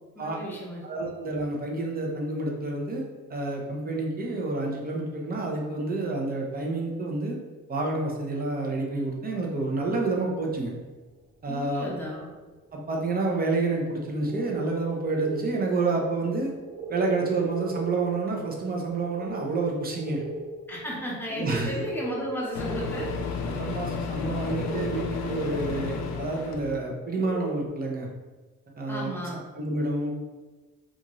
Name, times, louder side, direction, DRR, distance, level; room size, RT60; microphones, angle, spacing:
voice 1, 0.1-0.8 11.5-12.3 20.7-23.1 28.9-29.4, equal, 5° left, -5 dB, 0.9 m, -34 dB
voice 2, 0.8-3.0 3.3-7.4 7.7-10.7 11.4-11.9 12.7-16.5 16.9-20.2 21.3-21.7 23.4-28.1 28.8-29.1 29.5-30.1, right 3 dB, 30° right, 0 dB, 0.6 m, -29 dB
sound 1, 12.6-12.7 14.1-27.7, right 3 dB, 65° right, 0.8 m, -39 dB
Microwave oven, 21.5-21.6 22.5-26.8, left 5 dB, 60° left, 0.4 m, -32 dB
2.5 x 2.5 x 3.0 m, 1.3 s
cardioid pair, 90°, 30 cm